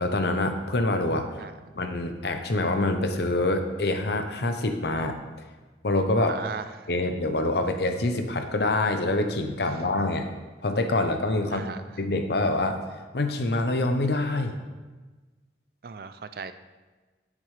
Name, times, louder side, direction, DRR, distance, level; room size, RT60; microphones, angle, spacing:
voice 1, 0.0-1.3 1.8-5.2 5.8-6.4 6.9-10.3 10.6-11.7 12.0-12.8 13.1-14.6, left 2 dB, 65° left, 6 dB, 0.8 m, -25 dB
voice 2, 1.4-1.7 6.2-6.9 11.5-11.8 15.8-16.5, right 5 dB, 55° right, 11 dB, 0.4 m, -37 dB
9.9 x 7.5 x 3.3 m, 1.3 s
head